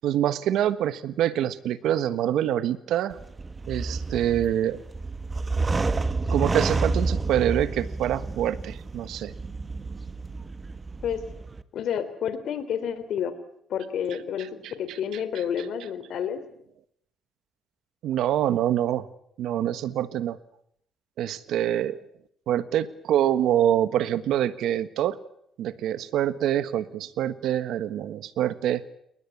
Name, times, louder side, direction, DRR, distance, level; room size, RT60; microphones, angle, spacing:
voice 1, 0.0-3.2 3.7-4.8 6.3-9.3 14.9-15.0 18.0-19.1 19.4-20.4 21.2-22.0 22.5-25.2 25.6-28.9, right 11 dB, 80° right, 14 dB, 1.4 m, -25 dB
sound 1, 3.1-11.6, right 3 dB, 25° right, 1.6 m, -29 dB
voice 2, 11.7-13.3 13.7-14.5 14.8-16.4, left 8 dB, 70° left, 12 dB, 3.6 m, -29 dB
29.5 x 19.5 x 8.6 m, 0.72 s
cardioid pair, 90°, 0 cm